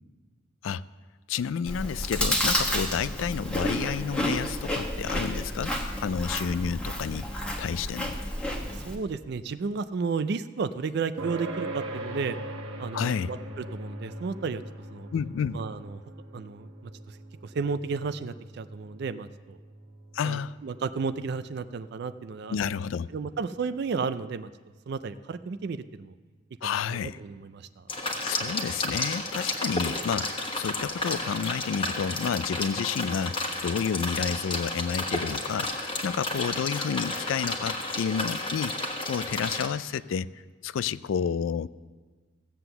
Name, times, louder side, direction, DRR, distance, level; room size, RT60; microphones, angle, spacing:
voice 1, 1.3-5.8 6.0-7.3 7.6-8.2 12.9-13.3 15.1-15.6 20.1-20.6 22.5-23.1 26.6-27.2 28.2-40.3 40.6-41.7, left 7 dB, 70° left, 18 dB, 0.3 m, -30 dB
Chewing mastication, 1.7-9.0, equal, 5° left, 1.1 m, -30 dB
voice 2, 8.7-12.4 12.8-14.6 14.9-15.1 15.5-16.0 16.3-17.2 17.4-19.6 20.2-22.7 23.1-24.5 24.9-26.1 26.6-27.8, right 5 dB, 55° right, 12 dB, 0.4 m, -33 dB
sound 1, 11.2-26.1, right 1 dB, 85° right, 1.3 m, -42 dB
sound 2, 27.9-39.7, left 2 dB, 25° left, 1.3 m, -32 dB
15.5 x 7.8 x 6.8 m, 1.4 s
head